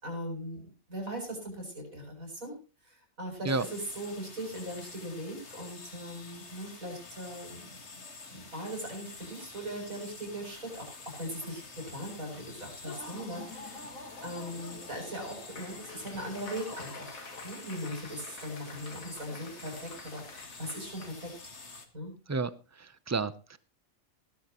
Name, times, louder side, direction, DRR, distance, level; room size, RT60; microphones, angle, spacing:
voice 1, 0.0-2.5 2.8-7.8 8.3-13.9 14.2-21.3 21.9-22.1, equal, 85° right, 2 dB, 7.4 m, -40 dB
sound 1, 3.5-21.9, left 3 dB, 55° left, 2.3 m, -48 dB
Laughter / Applause, 12.8-21.1, left 3 dB, 85° left, 2.7 m, -47 dB
voice 2, 22.3-23.6, right 3 dB, 20° right, 15 dB, 0.5 m, -32 dB
18.0 x 12.0 x 3.0 m, 0.33 s
omnidirectional pair, 1.4 m